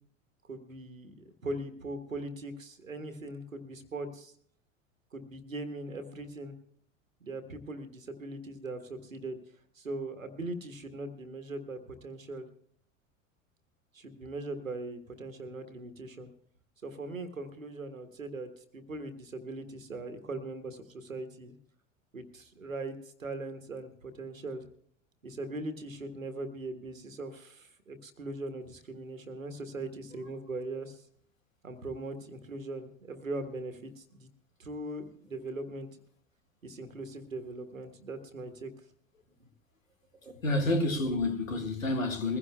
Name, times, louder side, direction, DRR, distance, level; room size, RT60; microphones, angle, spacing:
voice 1, 0.4-4.3 5.1-6.5 7.2-9.4 9.7-12.5 13.9-16.3 16.8-21.5 22.1-24.7 25.2-31.1 31.6-34.3 34.6-35.9 36.6-38.7 39.4-39.5 40.2-40.4, right 2 dB, 85° right, 1.4 m, -40 dB
voice 2, 40.4-42.4, left 2 dB, 85° left, 1.8 m, -29 dB
21.5 x 16.0 x 2.2 m
figure-of-eight pair, 80°, 39 cm